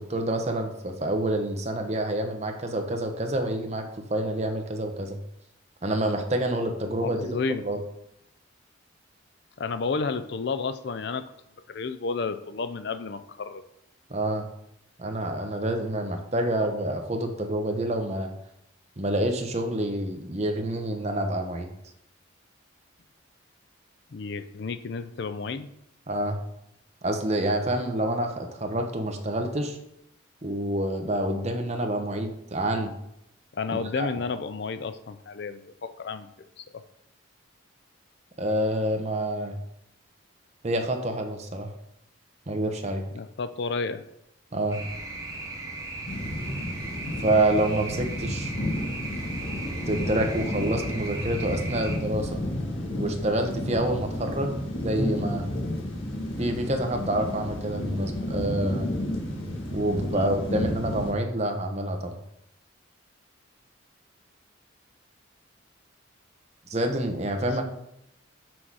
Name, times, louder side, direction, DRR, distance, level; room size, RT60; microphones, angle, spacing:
voice 1, 0.0-5.2 5.8-7.4 7.6-7.8 14.1-14.5 15.0-18.3 19.0-21.7 26.1-26.4 27.0-29.8 30.4-32.9 33.7-34.1 38.4-39.6 40.6-41.7 42.5-43.0 44.5-44.8 47.2-48.5 49.9-52.4 53.0-54.5 54.8-55.4 56.4-58.9 59.7-62.2 66.7-67.6, right 1 dB, 35° right, 4 dB, 0.9 m, -27 dB
voice 2, 7.0-7.6 9.6-11.2 11.7-13.6 24.1-25.7 33.5-36.8 43.1-44.0 60.0-60.3, left 4 dB, 55° left, 12 dB, 0.4 m, -31 dB
sound 1, 44.7-52.0, right 2 dB, 15° right, 1.1 m, -37 dB
sound 2, 46.1-61.1, left 1 dB, 75° left, 1.5 m, -31 dB
6.2 x 5.6 x 4.7 m, 0.79 s
head